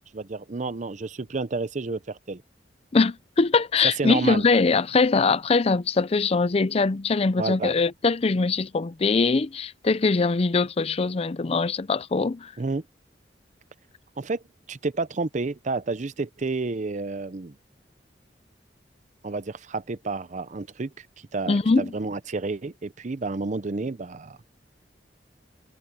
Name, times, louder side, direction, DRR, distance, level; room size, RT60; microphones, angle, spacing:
voice 1, 0.1-2.4 3.8-4.5 7.4-7.8 12.6-12.8 14.2-14.4 14.7-17.5 19.2-21.1 21.3-24.4, right 3 dB, 45° right, 0.6 m, -30 dB
voice 2, 2.9-12.5 21.5-21.9, left 4 dB, 35° left, 0.5 m, -22 dB
head